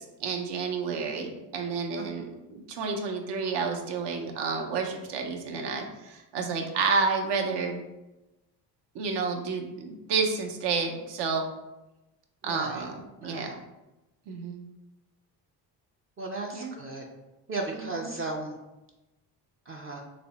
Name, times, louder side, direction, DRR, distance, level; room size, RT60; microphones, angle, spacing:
voice 1, 0.0-7.8 8.9-11.5 12.4-13.6 14.3-14.6 16.5-16.8 17.7-18.1, right 5 dB, 70° right, 3 dB, 0.7 m, -30 dB
voice 2, 2.0-2.3 12.4-12.9 13.2-13.5 16.2-17.0 17.5-18.6 19.7-20.0, right 3 dB, 30° right, 0 dB, 0.4 m, -35 dB
3.3 x 2.0 x 3.9 m, 1.0 s
cardioid pair, 80°, 43 cm